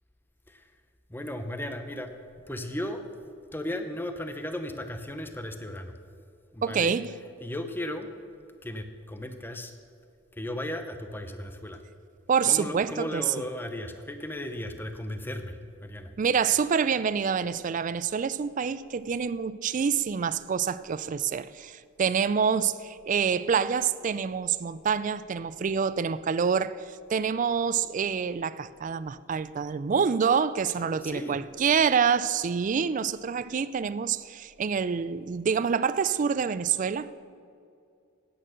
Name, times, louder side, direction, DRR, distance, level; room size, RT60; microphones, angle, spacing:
voice 1, 1.1-2.1 2.5-3.0 3.5-5.9 6.5-6.9 7.4-8.1 8.6-9.8 10.4-11.8 12.4-16.1 30.8-31.4, left 1 dB, 10° left, 0.7 m, -36 dB
voice 2, 6.6-7.1 12.3-13.3 16.2-37.1, right 6 dB, 40° right, 0.3 m, -27 dB
9.9 x 8.9 x 6.4 m
head